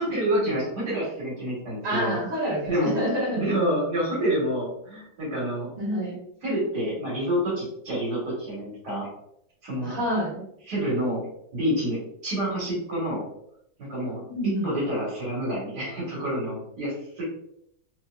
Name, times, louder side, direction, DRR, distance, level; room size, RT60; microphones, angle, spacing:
voice 1, 0.0-2.2 2.7-3.0 3.4-5.7 6.4-9.1 9.6-10.0 10.7-11.2 11.5-12.0 12.2-13.2 13.8-17.2, right 1 dB, 60° right, -7 dB, 1.8 m, -28 dB
voice 2, 1.8-3.4 5.8-6.2 9.8-10.4 14.3-14.7, equal, 30° right, -6 dB, 1.6 m, -28 dB
4.2 x 2.8 x 2.2 m, 0.75 s
omnidirectional pair, 2.1 m